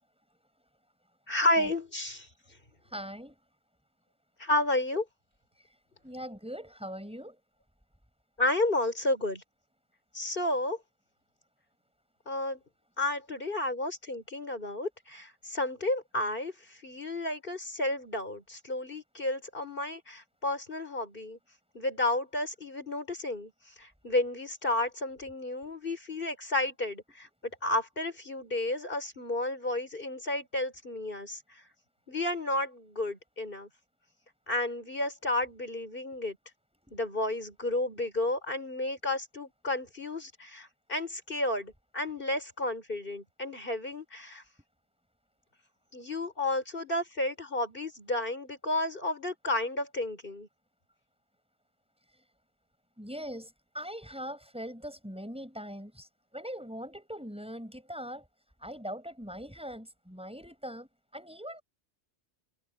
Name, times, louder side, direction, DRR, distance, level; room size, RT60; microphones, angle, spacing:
voice 1, 1.3-2.3 4.4-5.1 8.4-9.4 10.1-10.8 12.3-12.6 13.0-21.4 21.7-23.5 23.8-31.4 32.1-33.7 34.5-36.4 36.9-44.4 45.9-50.5, left 1 dB, 45° left, 5.7 m, -32 dB
voice 2, 2.9-3.3 6.0-7.4 36.1-36.2 53.0-53.5 53.7-56.1 56.3-58.2 58.6-60.9 61.1-61.6, equal, 5° right, 7.6 m, -41 dB
omnidirectional pair, 1.2 m